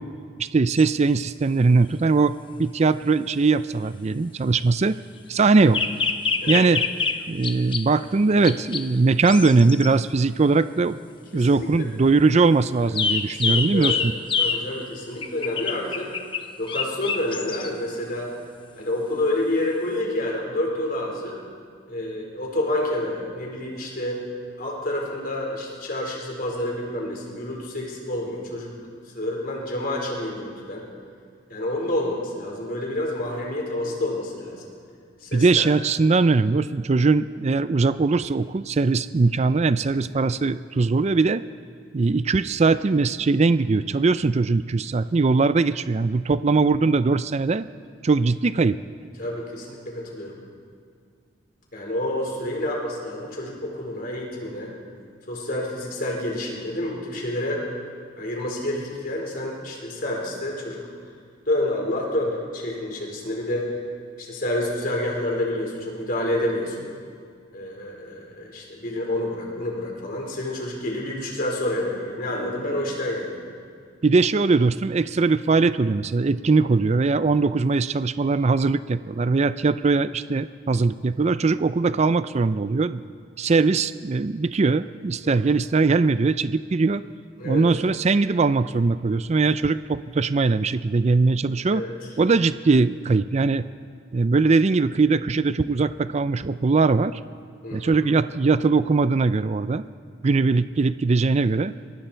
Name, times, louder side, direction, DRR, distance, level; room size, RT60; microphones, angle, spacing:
voice 1, 0.4-5.0 5.3-5.8 6.5-6.8 7.3-11.0 11.3-14.1 35.3-41.4 41.9-47.6 48.0-48.8 74.0-83.0 83.4-87.0 87.4-91.8 92.2-93.7 94.1-97.2 97.7-99.8 100.2-101.7, right 3 dB, 35° right, 13 dB, 0.4 m, -20 dB
sound 1, 0.8-0.9 5.7-7.9 8.4-8.9 9.2-9.9 12.9-14.7 15.2-17.7 19.6-19.7, left 5 dB, 25° left, 0.9 m, -26 dB
voice 2, 11.3-11.7 12.8-12.9 13.2-14.0 14.4-16.1 16.6-18.3 18.8-21.3 21.9-24.2 24.6-28.7 29.1-30.8 31.5-34.7 35.2-35.7 49.2-50.3 51.7-54.7 55.3-57.6 58.2-60.9 61.5-63.7 64.2-66.9 67.5-73.4 85.2-85.4 87.4-87.6 91.7-91.9 97.6-98.0, left 1 dB, 50° left, -1 dB, 4.6 m, -28 dB
26.0 x 23.0 x 4.5 m, 2.1 s
head